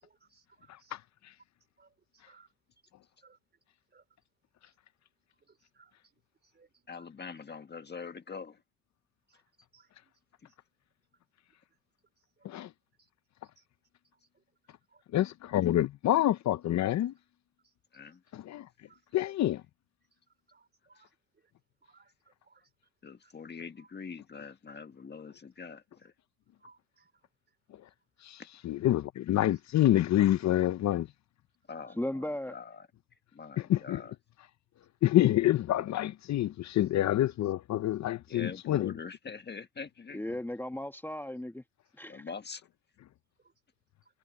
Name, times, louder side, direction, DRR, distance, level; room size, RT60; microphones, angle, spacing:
voice 1, 0.0-0.9 1.8-1.9 2.3-2.5 3.2-3.4 3.9-4.0 5.5-5.9 6.5-6.8 9.3-9.4 9.7-10.1 13.6-13.7 14.9-15.0 18.9-19.0 20.5-21.1 21.8-22.1 22.4-22.6 26.6-27.1, right 4 dB, 35° right, 4.1 m, -63 dB
voice 2, 6.9-8.6 10.4-10.5 17.9-18.2 20.9-21.0 23.0-26.1 31.7-32.9 33.3-34.1 38.3-40.2 42.1-42.6, left 5 dB, 35° left, 1.6 m, -44 dB
voice 3, 15.1-17.1 18.3-18.7 19.1-19.6 28.2-31.1 33.7-34.0 35.0-38.9, left 13 dB, 65° left, 0.7 m, -27 dB
voice 4, 32.0-32.6 40.1-41.6 42.0-42.2, left 1 dB, 5° left, 1.5 m, -36 dB
cardioid pair, 90°, 30 cm